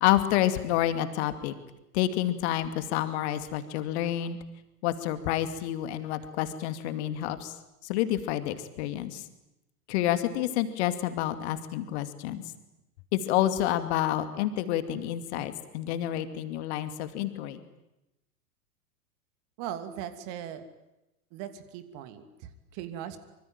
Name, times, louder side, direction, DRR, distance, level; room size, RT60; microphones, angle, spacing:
voice 1, 0.0-1.5 1.9-4.4 4.8-7.5 7.8-9.2 9.9-12.4 13.1-17.6, left 12 dB, 45° left, 10 dB, 2.6 m, -28 dB
voice 2, 19.6-20.6 21.3-23.2, right 10 dB, 40° right, 9 dB, 2.7 m, -39 dB
25.5 x 25.5 x 9.2 m, 0.92 s
figure-of-eight pair, 95°, 47 cm